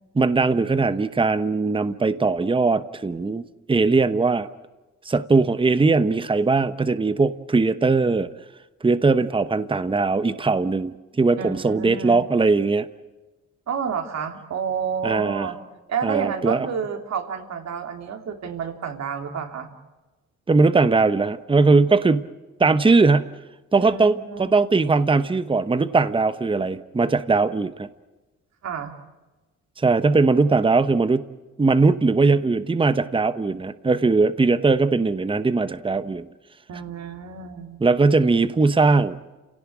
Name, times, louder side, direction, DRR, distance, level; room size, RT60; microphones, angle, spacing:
voice 1, 0.2-4.5 5.0-8.3 8.8-12.9 15.0-15.5 16.0-16.7 20.5-22.3 22.6-23.3 23.7-27.9 29.8-31.2 31.6-36.3 37.8-39.2, right 3 dB, 15° right, 13 dB, 1.0 m, -20 dB
voice 2, 11.4-12.2 13.7-15.6 15.9-19.7 23.8-24.5 28.6-29.0 36.7-37.9, right 7 dB, 60° right, 5 dB, 3.1 m, -30 dB
30.0 x 17.5 x 8.7 m, 1.2 s
cardioid pair, 90°, 30 cm